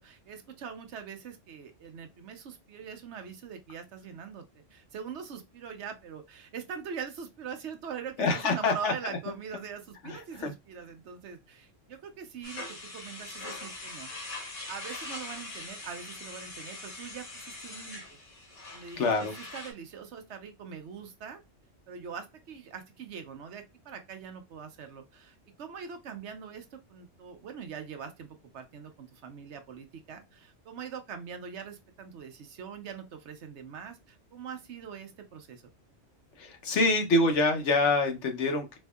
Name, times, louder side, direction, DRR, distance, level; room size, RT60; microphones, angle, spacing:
voice 1, 0.0-4.5 4.7-12.7 12.9-14.1 14.7-18.2 18.7-21.4 21.9-35.6, right 7 dB, 70° right, 1.0 m, -42 dB
voice 2, 8.2-9.2 10.0-10.5 19.0-19.4 36.4-38.8, left 2 dB, 70° left, 1.1 m, -26 dB
sound 1, 12.4-19.7, left 2 dB, 85° left, 1.8 m, -42 dB
4.2 x 2.7 x 2.3 m
omnidirectional pair, 1.3 m